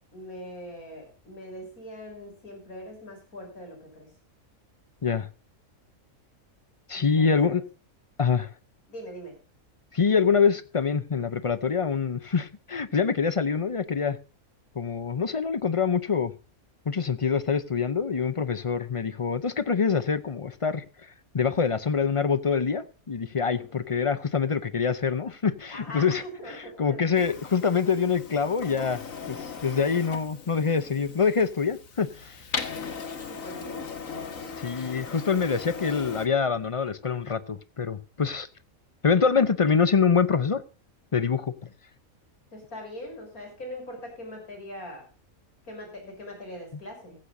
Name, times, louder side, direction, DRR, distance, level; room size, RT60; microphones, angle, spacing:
voice 1, 0.1-4.1 6.9-7.6 8.9-9.3 18.5-18.6 25.7-27.0 33.3-33.9 42.5-45.0 45.7-47.2, equal, 80° left, 6.7 m, -41 dB
voice 2, 6.9-7.6 8.2-8.5 9.9-14.2 14.8-16.3 16.9-20.8 21.3-32.4 34.6-38.5 39.0-40.6 41.1-41.5, left 6 dB, 45° left, 0.4 m, -25 dB
Printer, 27.1-36.3, left 5 dB, 65° left, 2.1 m, -38 dB
15.5 x 15.0 x 2.6 m
omnidirectional pair, 1.5 m